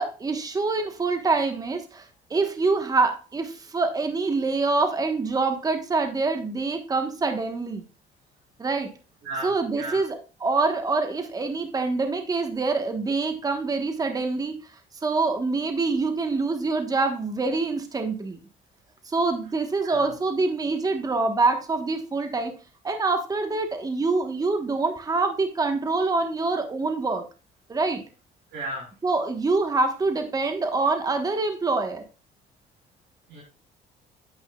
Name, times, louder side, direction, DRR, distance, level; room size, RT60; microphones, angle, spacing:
voice 1, 0.0-7.8 8.6-8.9 9.4-14.7 15.0-18.4 19.0-22.5 22.8-27.2 27.7-28.0 29.0-32.0, right 3 dB, 20° right, 6 dB, 1.2 m, -25 dB
voice 2, 9.2-10.0 19.8-20.1 28.5-28.9 33.3-33.4, right 1 dB, 80° right, -5 dB, 4.1 m, -34 dB
9.2 x 8.7 x 2.3 m, 0.32 s
cardioid pair, 110°, 17 cm